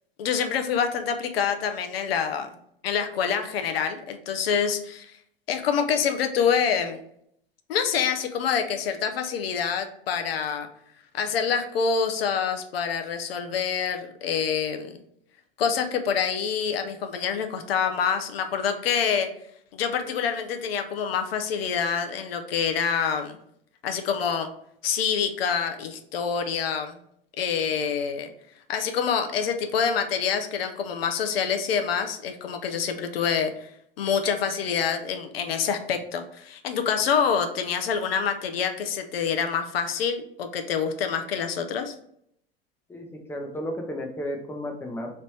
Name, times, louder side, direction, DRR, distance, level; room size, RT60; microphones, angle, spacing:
voice 1, 0.2-2.5 2.8-5.1 5.5-7.0 7.7-10.7 11.1-15.0 15.6-19.3 19.7-23.4 23.8-24.5 24.8-27.0 27.4-28.3 28.7-33.7 34.0-41.9, left 7 dB, 75° left, 6 dB, 0.6 m, -26 dB
voice 2, 42.9-45.1, equal, 10° left, 2 dB, 0.6 m, -33 dB
3.2 x 2.6 x 3.1 m, 0.70 s
hypercardioid pair, 90°, 30 cm